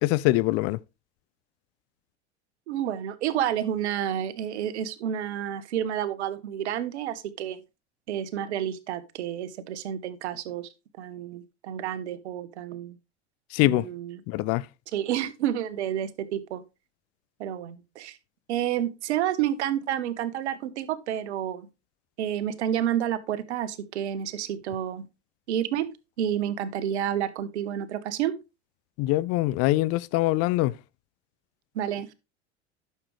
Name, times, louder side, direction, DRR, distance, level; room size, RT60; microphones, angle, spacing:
voice 1, 0.0-0.8 13.5-13.9 14.3-14.7 29.0-30.7, left 18 dB, 45° left, 0.4 m, -23 dB
voice 2, 2.7-7.6 8.1-10.7 11.0-13.0 13.6-14.2 14.9-16.6 17.4-18.2 18.5-21.7 22.2-25.1 25.5-25.9 26.2-28.3 31.7-32.1, right 10 dB, 75° right, 1.0 m, -30 dB
11.0 x 6.5 x 3.2 m
hypercardioid pair, 75°, 34 cm